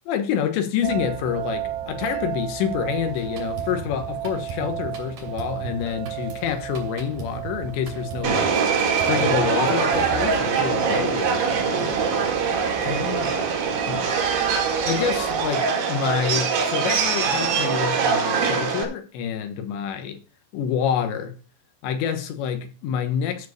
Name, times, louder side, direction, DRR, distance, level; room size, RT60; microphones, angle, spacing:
voice 1, 0.1-11.9 12.8-13.3 13.9-14.1 14.8-20.2 20.5-21.3 21.8-23.5, left 8 dB, 80° left, 3.4 m, -27 dB
sound 1, 0.8-15.5, right 12 dB, 90° right, 3.4 m, -35 dB
Drum kit, 3.1-10.4, right 6 dB, 45° right, 3.7 m, -38 dB
Subway metro underground, 8.2-18.8, right 5 dB, 65° right, 3.9 m, -23 dB
13.5 x 4.7 x 6.6 m
omnidirectional pair, 5.3 m